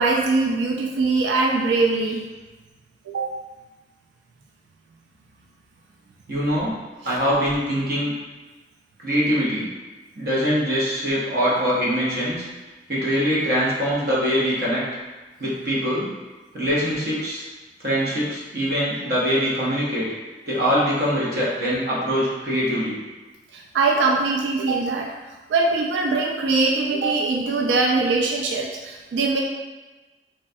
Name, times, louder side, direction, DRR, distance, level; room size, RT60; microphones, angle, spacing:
voice 1, 0.0-2.3 3.1-3.2 23.5-25.1 25.5-29.4, right 3 dB, 90° right, 0 dB, 0.3 m, -22 dB
voice 2, 6.3-6.8 7.0-8.1 9.0-9.7 10.2-12.5 12.9-14.8 15.4-16.1 16.5-17.4 17.8-20.1 20.5-23.0, equal, 55° right, -7 dB, 0.9 m, -23 dB
3.1 x 2.3 x 2.6 m, 1.2 s
head